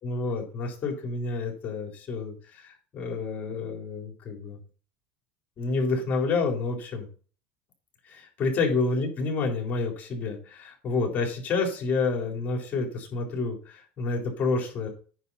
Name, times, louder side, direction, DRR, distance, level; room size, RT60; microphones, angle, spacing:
voice 1, 0.0-4.6 5.6-7.1 8.1-14.9, left 3 dB, 35° left, 1 dB, 4.0 m, -29 dB
9.4 x 5.6 x 5.6 m, 0.39 s
supercardioid pair, 130°, 5 cm